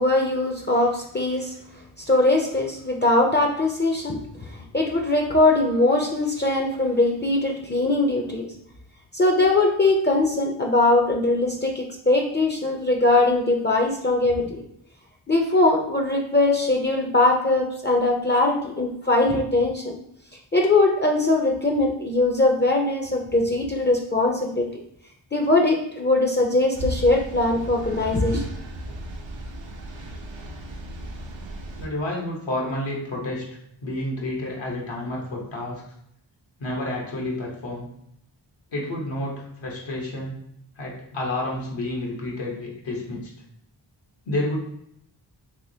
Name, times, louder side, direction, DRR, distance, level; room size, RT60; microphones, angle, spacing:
voice 1, 0.0-1.5 2.1-8.5 9.1-14.6 15.3-20.0 20.5-24.7 25.3-28.4, left 2 dB, 25° left, 1 dB, 0.5 m, -21 dB
sound 1, 26.7-31.9, equal, 75° right, 0.7 m, -35 dB
voice 2, 31.8-35.9 36.6-37.9 38.7-40.3 40.7-43.3 44.3-44.6, left 1 dB, 75° left, -2 dB, 1.0 m, -30 dB
3.4 x 2.9 x 2.7 m, 0.73 s
wide cardioid pair, 70°, 46 cm